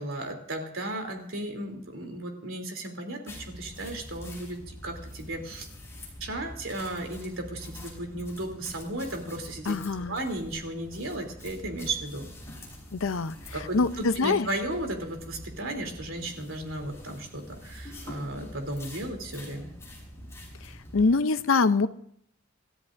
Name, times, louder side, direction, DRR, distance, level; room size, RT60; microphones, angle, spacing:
voice 1, 0.0-4.6 4.8-5.7 6.2-9.8 10.1-12.3 13.5-19.7, right 1 dB, 70° right, 3 dB, 3.1 m, -35 dB
sound 1, 3.3-21.1, left 1 dB, 15° left, 5.1 m, -45 dB
voice 2, 9.7-10.2 12.9-13.4 13.7-14.5 20.9-21.9, left 4 dB, 75° left, 13 dB, 0.7 m, -24 dB
27.0 x 13.5 x 2.6 m, 0.69 s
head